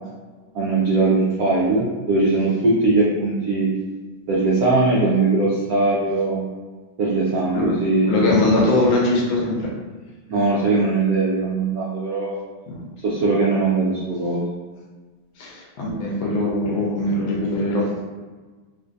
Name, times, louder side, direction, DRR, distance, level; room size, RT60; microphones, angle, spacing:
voice 1, 0.5-3.7 4.3-6.4 7.0-8.3 10.3-12.4 13.0-14.4, right 3 dB, 80° right, -5 dB, 0.8 m, -20 dB
voice 2, 8.1-9.7 12.7-12.8 15.4-17.9, left 2 dB, 70° left, -3 dB, 1.4 m, -21 dB
3.8 x 2.6 x 2.5 m, 1.4 s
omnidirectional pair, 2.3 m